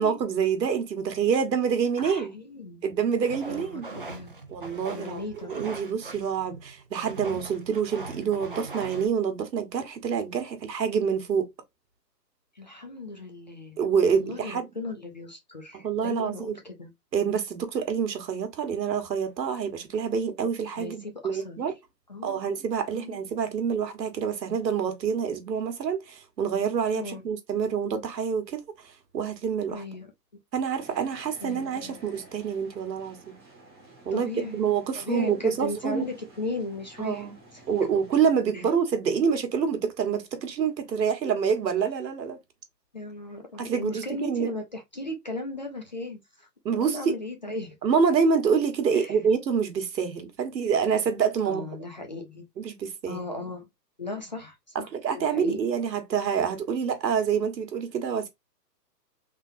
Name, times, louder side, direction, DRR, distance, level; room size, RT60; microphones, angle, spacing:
voice 1, 0.0-2.4 2.8-3.9 4.5-11.5 13.8-14.7 15.7-16.6 17.1-21.7 22.2-29.8 30.5-33.3 34.0-36.0 37.0-37.4 37.7-42.4 43.6-44.5 46.6-47.1 47.8-51.6 52.6-53.2 54.7-58.3, right 6 dB, 80° right, 1.5 m, -27 dB
voice 2, 2.0-2.8 3.5-4.3 4.9-5.6 12.6-13.8 14.1-16.9 20.8-21.6 22.1-22.4 22.9-23.2 27.0-27.2 29.7-30.1 31.4-32.0 34.1-34.6 35.0-37.3 38.5-38.6 42.9-46.5 46.7-47.8 48.9-49.2 51.5-52.4 53.1-53.7 54.0-55.6, left 2 dB, 30° left, 0.5 m, -36 dB
sound 1, 3.2-9.1, right 3 dB, 35° right, 0.4 m, -41 dB
sound 2, 30.8-38.2, right 2 dB, 15° right, 1.1 m, -52 dB
3.7 x 3.4 x 2.6 m
hypercardioid pair, 170°, 49 cm